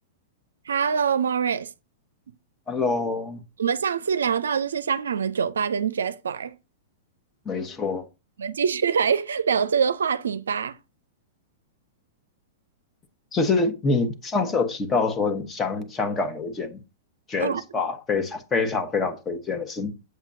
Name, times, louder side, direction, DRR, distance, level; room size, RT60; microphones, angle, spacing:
voice 1, 0.7-1.7 3.6-6.5 8.4-10.8 17.4-17.6, right 7 dB, 75° right, 0.5 m, -24 dB
voice 2, 2.7-3.4 7.4-8.0 13.3-16.8 17.3-19.9, left 4 dB, 20° left, 1.3 m, -26 dB
8.1 x 7.2 x 2.7 m
figure-of-eight pair, 105°, 0 cm